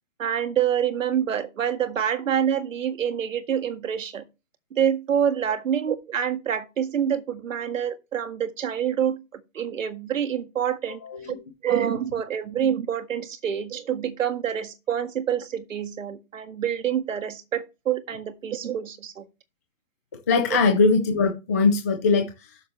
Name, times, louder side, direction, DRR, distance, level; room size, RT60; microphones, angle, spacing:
voice 1, 0.2-4.2 4.7-11.0 11.3-11.4 11.6-19.3, right 9 dB, 90° right, 1.8 m, -27 dB
voice 2, 11.0-11.4 20.3-22.6, left 4 dB, 15° left, 0.4 m, -21 dB
12.5 x 6.4 x 3.2 m
hypercardioid pair, 165°, 38 cm